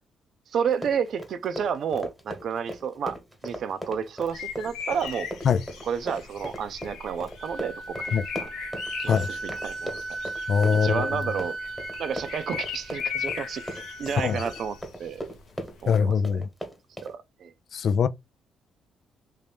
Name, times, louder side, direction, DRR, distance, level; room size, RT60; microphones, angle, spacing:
voice 1, 0.5-3.2 3.4-5.3 5.8-8.5 9.0-9.9 10.7-11.6 12.0-15.2 15.8-16.1 17.0-17.5, right 7 dB, 65° right, 0.5 m, -31 dB
Run, 0.7-17.1, equal, 5° left, 1.3 m, -38 dB
sound 1, 4.2-15.9, left 7 dB, 85° left, 0.8 m, -38 dB
Wind instrument woodwind instrument, 7.0-14.8, right 3 dB, 90° right, 0.9 m, -36 dB
voice 2, 10.5-11.2 14.2-14.4 15.9-16.5 17.7-18.1, left 6 dB, 60° left, 0.4 m, -22 dB
3.2 x 2.7 x 3.4 m
cardioid pair, 90°, 0 cm